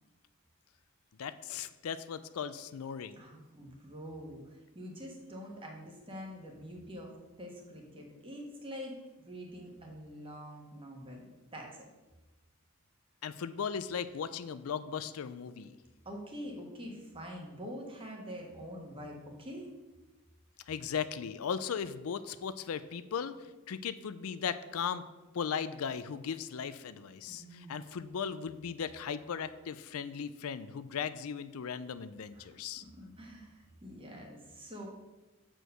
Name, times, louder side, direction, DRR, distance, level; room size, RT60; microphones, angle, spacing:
voice 1, 1.2-3.2 13.2-15.8 20.7-25.0 25.3-32.8, left 7 dB, 80° left, 13 dB, 0.4 m, -37 dB
voice 2, 3.1-9.0 9.2-11.2 11.5-11.8 16.0-19.7 27.3-27.8 32.3-32.5 32.9-34.9, equal, 25° right, 0 dB, 1.4 m, -45 dB
6.4 x 4.6 x 6.7 m, 1.1 s
head